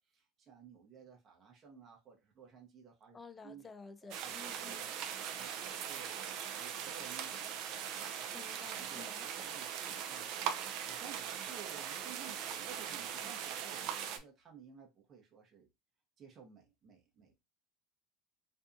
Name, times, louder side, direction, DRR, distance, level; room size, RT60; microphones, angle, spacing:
voice 1, 0.0-3.2 3.4-3.7 4.0-6.2 6.5-8.0 8.8-10.3 10.8-15.7 16.2-17.3, right 7 dB, 40° right, 0.8 m, -55 dB
voice 2, 3.1-5.0 8.3-9.3, left 4 dB, 25° left, 0.4 m, -52 dB
sound 1, 4.1-14.2, right 9 dB, 65° right, 0.4 m, -40 dB
2.6 x 2.3 x 2.5 m
supercardioid pair, 100°, 0 cm